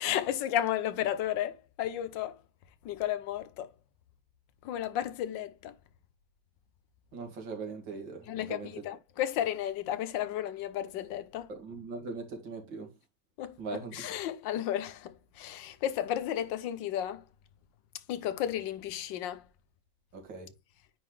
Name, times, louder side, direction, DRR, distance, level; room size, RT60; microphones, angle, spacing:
voice 1, 0.0-2.4 2.8-3.7 4.6-5.7 8.2-11.5 13.4-17.2 18.1-19.4, left 11 dB, 85° left, 1.5 m, -33 dB
voice 2, 7.1-8.7 11.5-12.9 13.6-14.0 20.1-20.5, right 4 dB, 90° right, 2.7 m, -40 dB
9.7 x 3.8 x 3.2 m
omnidirectional pair, 1.9 m